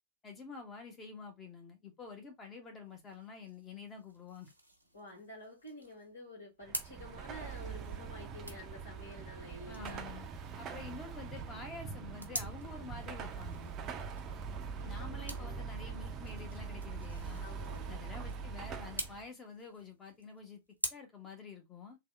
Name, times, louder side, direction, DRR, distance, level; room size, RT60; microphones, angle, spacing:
voice 1, 0.2-4.5 9.7-10.3 10.6-13.7 14.8-17.5 17.9-20.6 20.9-22.0, left 4 dB, 20° left, 1.3 m, -48 dB
sound 1, 2.8-20.9, right 1 dB, 85° right, 0.7 m, -48 dB
voice 2, 4.9-10.0 14.8-15.7 17.4-18.0, left 1 dB, 60° left, 1.5 m, -50 dB
Car passing by / Traffic noise roadway noise / Engine, 6.6-19.3, right 5 dB, 30° right, 0.5 m, -43 dB
3.4 x 2.4 x 3.3 m
figure-of-eight pair, 90°, 0 cm